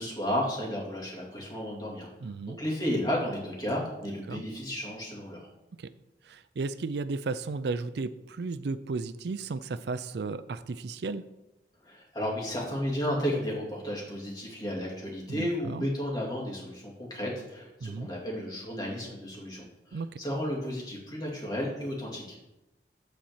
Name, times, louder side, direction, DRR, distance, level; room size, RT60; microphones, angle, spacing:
voice 1, 0.0-2.1 2.5-5.5 11.8-22.4, equal, 25° left, -3 dB, 2.3 m, -33 dB
voice 2, 2.2-2.6 4.3-4.4 5.8-5.9 6.3-11.2 15.3-15.9 17.8-18.1 19.9-20.1, right 3 dB, 70° right, 13 dB, 0.4 m, -34 dB
8.9 x 4.2 x 7.3 m, 0.94 s
head